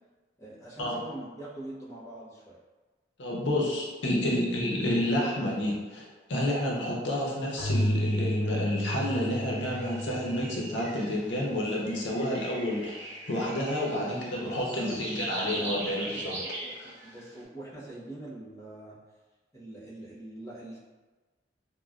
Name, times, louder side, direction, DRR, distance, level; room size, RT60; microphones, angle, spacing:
voice 1, 0.4-2.6 13.8-15.0 15.4-16.7 17.0-19.0 19.5-20.8, right 1 dB, 15° left, -9 dB, 0.7 m, -44 dB
voice 2, 3.2-16.4 16.8-16.9, left 1 dB, 85° left, -4 dB, 0.6 m, -30 dB
Keyboard (musical), 7.6-11.1, equal, 5° right, 1.4 m, -31 dB
sound 1, 9.0-11.3 11.8-17.3, right 2 dB, 90° right, 0.7 m, -41 dB
3.0 x 2.1 x 2.4 m, 1.3 s
head